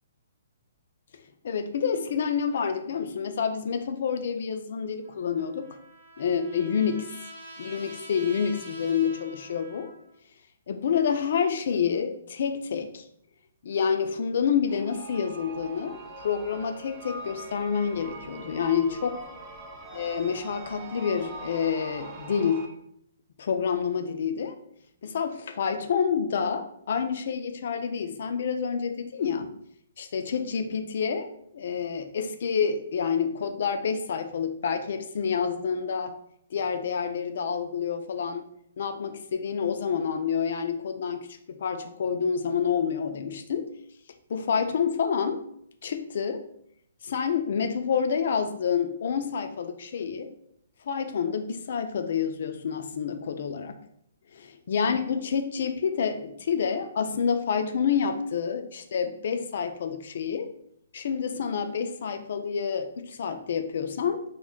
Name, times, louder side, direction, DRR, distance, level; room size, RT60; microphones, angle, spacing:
voice 1, 1.4-5.7 6.2-7.1 7.6-9.9 10.7-13.0 13.6-19.2 19.9-22.6 23.4-24.6 25.0-29.5 30.0-31.3 31.5-36.1 36.5-38.4 38.8-43.7 44.3-45.4 45.8-46.4 47.0-50.3 50.9-53.8 54.3-60.5 60.9-64.2, left 6 dB, 60° left, 7 dB, 0.3 m, -28 dB
Trumpet, 5.0-10.2, right 1 dB, 75° right, 1.0 m, -47 dB
sound 1, 14.7-22.7, right 3 dB, 20° right, 0.4 m, -42 dB
2.6 x 2.1 x 3.6 m, 0.71 s
hypercardioid pair, 155°, 0 cm